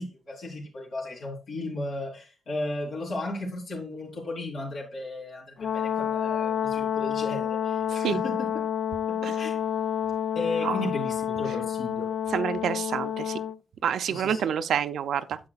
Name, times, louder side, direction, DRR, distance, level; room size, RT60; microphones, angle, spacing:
voice 1, 0.0-8.7 9.0-9.6 10.3-12.1 14.0-14.4, left 2 dB, 70° left, 3.1 m, -35 dB
Brass instrument, 5.6-13.6, left 9 dB, 55° left, 0.4 m, -29 dB
voice 2, 12.3-13.4 13.8-15.4, right 8 dB, 80° right, 0.5 m, -27 dB
9.4 x 7.7 x 2.4 m
wide cardioid pair, 140°, 0 cm